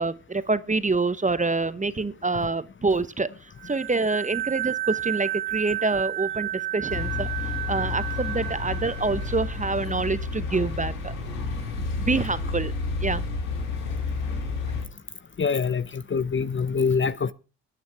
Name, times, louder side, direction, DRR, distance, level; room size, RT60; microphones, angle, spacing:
voice 1, 0.0-7.3 7.7-11.1 12.0-12.7 13.0-13.2, right 3 dB, 20° right, 0.9 m, -26 dB
sound 1, 3.6-10.1, right 15 dB, 80° right, 1.2 m, -32 dB
sound 2, 6.9-14.9, left 4 dB, 90° left, 2.4 m, -30 dB
voice 2, 15.4-17.3, left 5 dB, 30° left, 0.7 m, -25 dB
21.0 x 9.3 x 3.4 m
hypercardioid pair, 50°, 41 cm